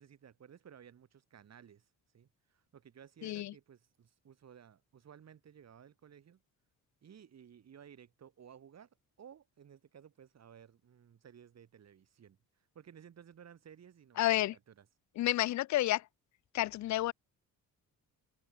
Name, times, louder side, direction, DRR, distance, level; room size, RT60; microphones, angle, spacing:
voice 1, 0.0-1.9 2.1-6.4 7.0-8.9 9.2-12.4 12.7-14.9, right 8 dB, 50° right, 7.4 m, -57 dB
voice 2, 3.2-3.5 14.2-14.5 15.2-16.0 16.5-17.1, left 15 dB, 55° left, 0.5 m, -30 dB
cardioid pair, 140°, 35 cm